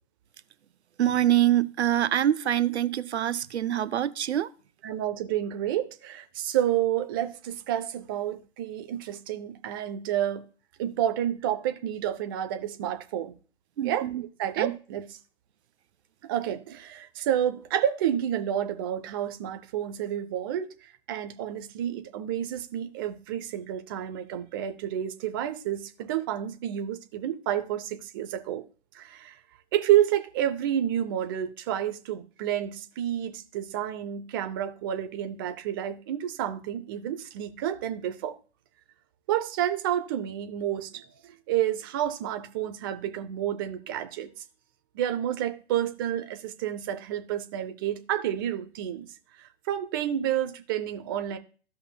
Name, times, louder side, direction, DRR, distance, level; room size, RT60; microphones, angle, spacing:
voice 1, 1.0-4.5 13.8-14.2 14.6-14.8, right 12 dB, 70° right, 0.8 m, -25 dB
voice 2, 4.8-10.4 10.8-13.3 13.8-14.0 14.4-15.1 16.2-20.7 21.1-28.6 28.9-29.3 29.7-38.3 39.3-41.0 41.5-44.3 44.9-49.1 49.4-51.4, right 11 dB, 20° right, 0.5 m, -29 dB
15.5 x 5.3 x 2.2 m
hypercardioid pair, 140°, 35 cm